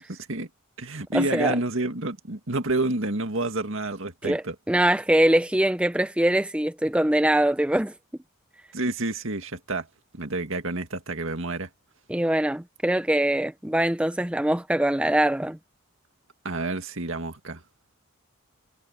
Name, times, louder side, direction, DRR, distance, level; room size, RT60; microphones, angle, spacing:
voice 1, 0.1-0.5 0.8-4.6 8.7-9.9 10.1-11.7 16.4-17.6, right 2 dB, 60° right, 2.1 m, -29 dB
voice 2, 1.1-1.5 4.2-7.9 12.1-15.6, right 1 dB, 5° right, 0.5 m, -23 dB
head